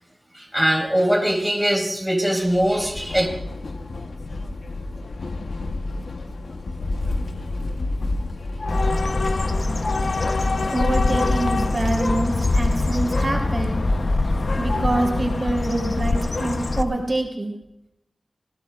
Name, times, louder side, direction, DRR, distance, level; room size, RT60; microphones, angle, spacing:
voice 1, 0.3-3.3, equal, ahead, 0 dB, 4.0 m, -21 dB
Train / Subway metro underground, 2.4-17.3, left 3 dB, 90° left, 1.1 m, -30 dB
Bird, 8.7-16.8, left 2 dB, 55° left, 0.9 m, -23 dB
voice 2, 10.7-13.8 14.6-17.5, right 2 dB, 40° right, 1 dB, 3.5 m, -25 dB
26.5 x 16.5 x 2.5 m, 0.86 s
wide cardioid pair, 80°, 0 cm